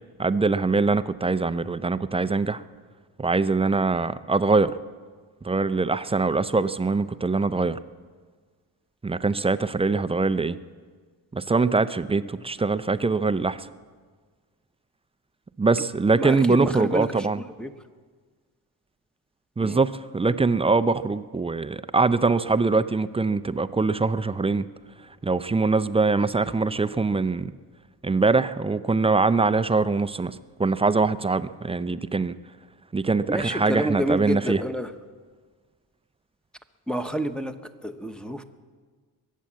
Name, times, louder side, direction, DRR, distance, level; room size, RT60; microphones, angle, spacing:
voice 1, 0.2-2.6 3.2-4.8 5.4-7.8 9.0-10.6 11.3-13.7 15.6-17.4 19.6-24.7 25.2-27.5 28.0-32.3 32.9-34.6, right 3 dB, 15° right, 13 dB, 0.4 m, -23 dB
voice 2, 16.2-17.3 17.6-17.7 19.6-19.8 33.3-34.9 36.9-37.5 37.8-38.4, equal, ahead, 5 dB, 1.0 m, -28 dB
22.5 x 8.4 x 7.5 m, 1.5 s
cardioid pair, 85°, 42 cm